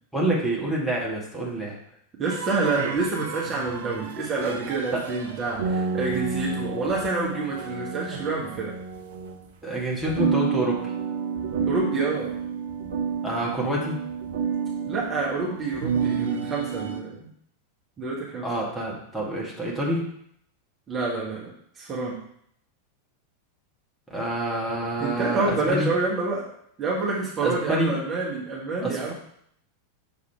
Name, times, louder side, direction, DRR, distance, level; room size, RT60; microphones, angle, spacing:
voice 1, 0.1-1.8 4.9-5.0 9.6-10.8 13.2-14.0 18.4-20.1 24.1-25.9 27.4-27.9 28.8-29.1, right 1 dB, 5° left, -5 dB, 1.8 m, -27 dB
voice 2, 2.2-8.7 11.7-12.3 14.8-17.3 18.0-18.5 20.9-22.2 25.0-26.4 26.8-29.1, right 3 dB, 25° right, -5 dB, 1.6 m, -28 dB
sound 1, 2.3-9.5 10.0-17.0, right 6 dB, 60° right, 0.6 m, -30 dB
6.3 x 3.6 x 4.6 m, 0.69 s
figure-of-eight pair, 90°, 0 cm